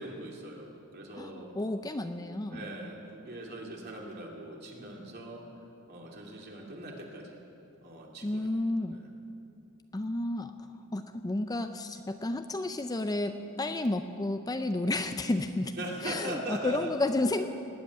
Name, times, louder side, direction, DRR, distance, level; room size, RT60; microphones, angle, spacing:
voice 1, 0.0-1.5 2.5-5.4 5.9-7.4 7.8-8.5 8.9-9.1 15.8-16.9, right 1 dB, 50° right, -2 dB, 2.7 m, -41 dB
voice 2, 1.2-2.7 8.2-9.0 9.9-10.5 10.9-15.7 16.0-17.5, left 2 dB, 15° left, 8 dB, 0.5 m, -31 dB
19.0 x 7.9 x 9.5 m, 2.7 s
head